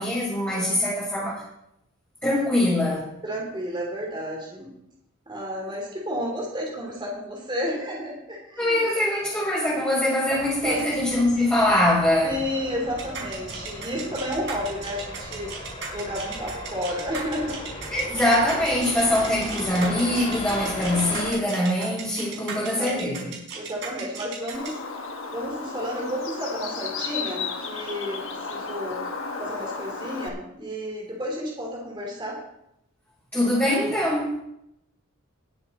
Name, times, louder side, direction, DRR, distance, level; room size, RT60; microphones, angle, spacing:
voice 1, 0.0-1.4 2.2-3.1 8.6-12.4 17.9-23.3 33.3-34.3, left 1 dB, 10° left, -7 dB, 3.9 m, -23 dB
voice 2, 0.5-1.1 3.2-4.7 5.3-8.8 10.6-10.8 12.2-15.5 15.9-17.7 22.3-22.9 23.5-24.8 25.3-29.0 29.4-32.4, equal, 20° right, -1 dB, 3.0 m, -32 dB
sound 1, 10.3-21.3, left 1 dB, 30° left, 5.6 m, -37 dB
sound 2, 13.0-24.7, right 5 dB, 60° right, 4.9 m, -36 dB
Bird, 24.5-30.3, left 4 dB, 65° left, 1.4 m, -33 dB
20.0 x 7.5 x 4.2 m, 0.80 s
head